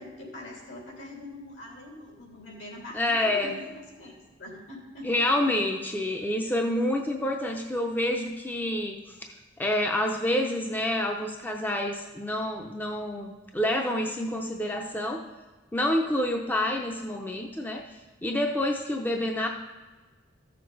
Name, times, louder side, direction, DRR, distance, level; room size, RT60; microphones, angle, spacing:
voice 1, 0.0-5.1, left 2 dB, 75° left, -2 dB, 2.9 m, -43 dB
voice 2, 2.9-3.6 5.0-15.2 15.7-19.5, left 1 dB, 10° left, 2 dB, 0.6 m, -28 dB
14.0 x 6.7 x 3.9 m, 1.3 s
head